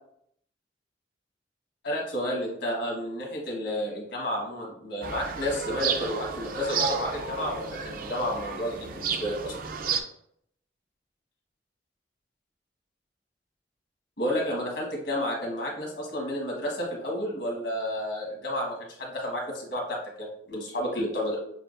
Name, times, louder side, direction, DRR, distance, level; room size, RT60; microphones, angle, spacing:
voice 1, 1.8-9.6 14.2-21.4, equal, 75° left, 0 dB, 1.2 m, -31 dB
sound 1, 5.0-10.0, right 6 dB, 50° right, 0.4 m, -32 dB
6.6 x 2.2 x 2.5 m, 0.69 s
head